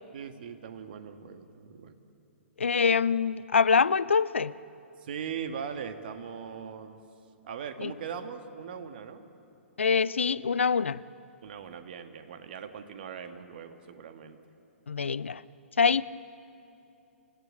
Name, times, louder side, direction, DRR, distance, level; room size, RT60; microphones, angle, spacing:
voice 1, 0.1-1.9 5.0-7.0 7.4-9.3 11.4-14.4, right 7 dB, 50° right, 1.6 m, -40 dB
voice 2, 2.6-4.5 7.8-7.9 9.8-11.0 14.9-15.4 15.8-16.0, left 5 dB, 70° left, 0.5 m, -24 dB
27.5 x 16.0 x 8.6 m
figure-of-eight pair, 115°, 7 cm